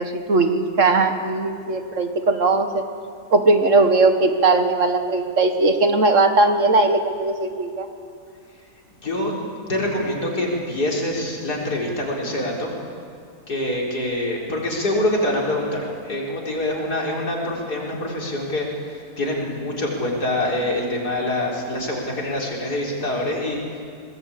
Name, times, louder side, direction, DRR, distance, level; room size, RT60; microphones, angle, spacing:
voice 1, 0.0-2.8 3.3-7.9, right 3 dB, 55° right, 7 dB, 1.8 m, -19 dB
voice 2, 9.0-9.3 9.7-12.7 13.5-23.8, left 1 dB, 80° left, -2 dB, 5.1 m, -25 dB
26.5 x 20.0 x 8.6 m, 2.3 s
omnidirectional pair, 1.7 m